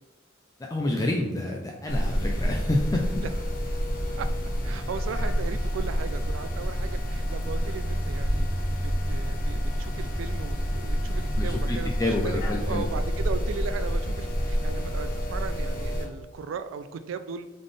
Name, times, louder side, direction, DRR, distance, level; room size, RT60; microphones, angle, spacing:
voice 1, 0.6-3.2 11.4-12.9, left 1 dB, 20° left, 0 dB, 0.4 m, -28 dB
sound 1, 1.9-16.1, equal, 45° left, 0.9 m, -28 dB
voice 2, 4.6-17.5, right 5 dB, 85° right, 10 dB, 0.3 m, -37 dB
3.9 x 3.6 x 3.3 m, 1.1 s
head